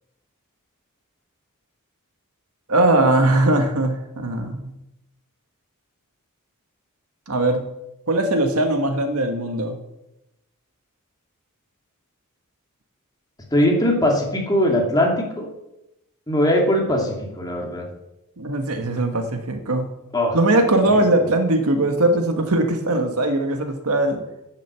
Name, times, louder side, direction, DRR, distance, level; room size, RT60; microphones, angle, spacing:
voice 1, 2.7-4.7 7.3-7.6 8.1-9.8 18.4-19.9 20.3-24.2, right 2 dB, 75° right, 5 dB, 1.5 m, -20 dB
voice 2, 13.5-15.5 16.3-17.9 20.1-20.4, left 1 dB, 15° left, 0 dB, 2.4 m, -20 dB
10.5 x 7.6 x 6.8 m, 0.89 s
head